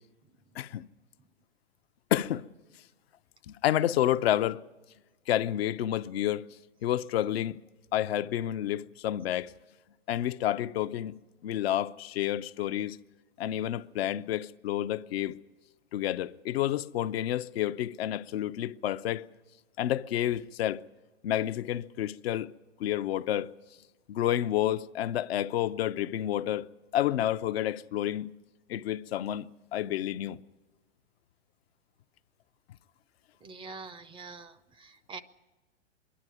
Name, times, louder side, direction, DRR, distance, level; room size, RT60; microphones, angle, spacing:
voice 1, 2.1-2.5 3.5-4.6 5.3-6.5 6.8-7.6 7.9-9.5 10.1-11.1 11.4-13.0 13.4-15.4 15.9-19.3 19.8-20.8 21.2-22.5 22.8-23.6 24.1-26.7 26.9-28.3 28.7-30.4, left 12 dB, 60° left, 0.6 m, -29 dB
voice 2, 33.4-35.2, right 4 dB, 15° right, 0.5 m, -45 dB
25.5 x 11.5 x 9.2 m
hypercardioid pair, 115°, 35 cm